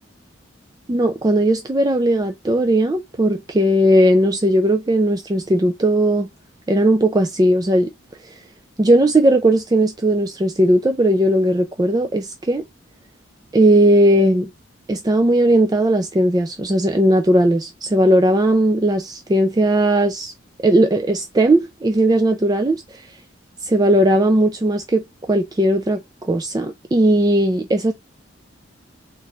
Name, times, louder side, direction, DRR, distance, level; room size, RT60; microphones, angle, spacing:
voice 1, 0.9-6.3 6.7-7.9 8.2-8.4 8.8-12.6 13.5-14.5 14.9-19.0 19.3-20.3 20.6-23.2 23.6-26.0 26.3-27.9, right 1 dB, 20° right, 0.4 m, -17 dB
4.1 x 3.9 x 2.4 m
head